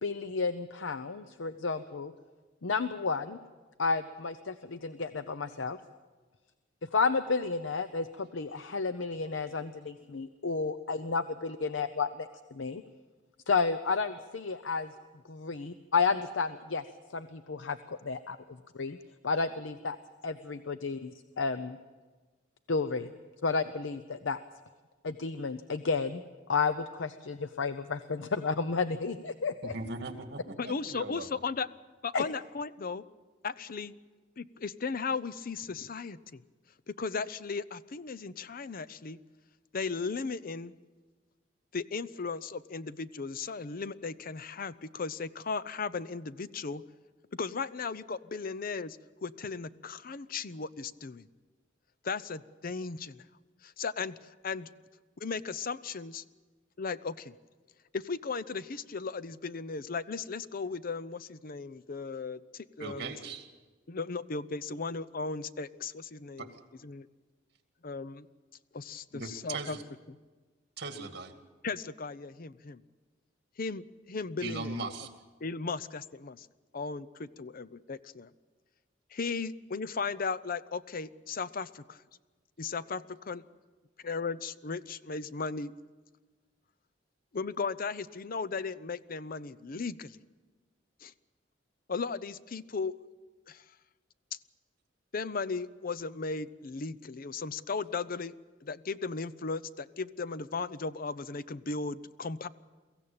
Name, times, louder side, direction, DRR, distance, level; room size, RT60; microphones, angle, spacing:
voice 1, 0.0-2.1 2.6-3.4 3.8-5.8 6.9-12.8 13.5-14.9 15.3-16.8 17.1-17.8 18.0-18.4 18.7-19.0 19.2-20.0 20.2-21.8 22.7-23.1 23.4-24.4 25.0-26.2 26.5-29.7 32.1-32.3, left 4 dB, 90° left, 11 dB, 0.7 m, -31 dB
voice 2, 29.6-30.5 30.8-31.3 62.8-63.5 66.4-66.5 69.1-69.8 70.8-71.3 74.4-75.1, right 3 dB, 60° right, 6 dB, 2.3 m, -38 dB
voice 3, 30.6-31.7 32.0-33.0 33.4-33.9 34.4-36.4 36.9-39.2 39.7-40.7 41.7-46.8 47.3-51.3 52.0-53.2 53.6-54.2 54.4-54.7 55.2-56.2 56.8-57.3 57.9-63.1 63.9-66.5 66.8-67.1 67.8-68.3 68.7-69.8 70.1-70.2 71.6-72.8 73.6-74.9 75.4-76.5 76.7-78.3 79.1-82.0 82.6-83.4 84.0-85.7 87.3-90.2 91.0-91.1 91.9-92.9 93.5-93.6 95.1-98.3 98.6-102.5, left 4 dB, 50° left, 16 dB, 0.6 m, -36 dB
23.0 x 15.5 x 8.8 m, 1.3 s
head